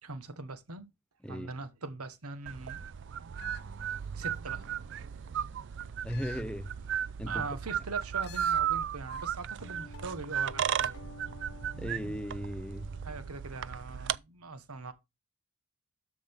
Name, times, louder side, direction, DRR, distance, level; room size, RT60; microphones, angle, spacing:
voice 1, 0.0-0.9 1.3-2.8 4.1-4.7 7.2-11.0 13.0-14.9, right 3 dB, 90° right, 1.3 m, -41 dB
sound 1, 2.5-14.2, right 9 dB, 55° right, 0.4 m, -35 dB
sound 2, 3.4-4.5 6.1-6.5 6.9-7.0 8.2-8.6 9.1-9.4 9.7-9.8, left 10 dB, 50° left, 0.7 m, -50 dB
voice 2, 6.0-6.7 7.2-7.5 11.8-12.9, equal, 5° left, 0.4 m, -37 dB
sound 3, 9.6-14.1, left 4 dB, 80° left, 0.9 m, -53 dB
12.5 x 5.1 x 3.6 m
head